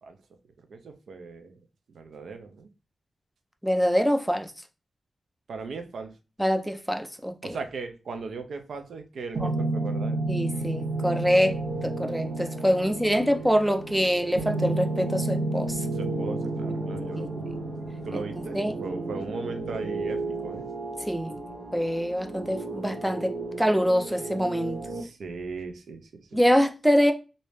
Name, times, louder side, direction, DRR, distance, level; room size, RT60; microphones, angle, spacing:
voice 1, 0.7-1.5 1.9-2.7 5.5-6.1 7.4-10.2 12.8-13.6 15.9-17.5 18.0-20.7 25.0-26.4, right 4 dB, 80° right, 0.5 m, -38 dB
voice 2, 3.6-4.5 6.4-7.6 9.4-9.5 10.3-15.9 17.2-17.3 18.1-18.8 21.0-21.4 21.7-24.8 26.3-27.1, equal, 5° right, 0.4 m, -25 dB
sound 1, 9.3-25.0, right 2 dB, 60° right, 0.9 m, -32 dB
3.1 x 2.7 x 3.1 m
wide cardioid pair, 115°, 0 cm